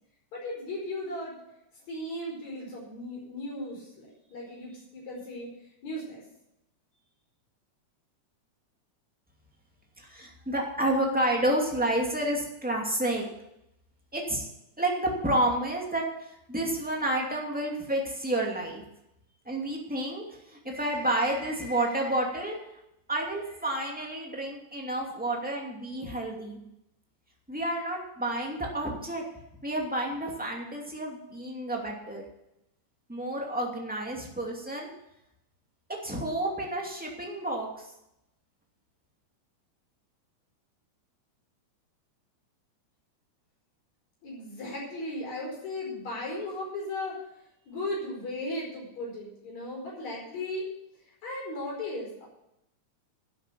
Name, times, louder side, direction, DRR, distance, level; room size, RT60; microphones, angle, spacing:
voice 1, 0.3-1.4 1.9-5.5 5.8-6.2 44.2-47.1 47.7-50.7 51.2-52.3, left 1 dB, 65° left, -3 dB, 6.2 m, -36 dB
voice 2, 10.0-13.2 14.1-14.5 14.8-16.0 16.5-18.8 19.5-22.6 23.1-26.6 27.5-29.2 29.6-32.2 33.1-34.9 36.0-37.9, right 1 dB, 5° right, -1 dB, 2.2 m, -30 dB
11.5 x 8.1 x 8.4 m, 0.84 s
omnidirectional pair, 3.5 m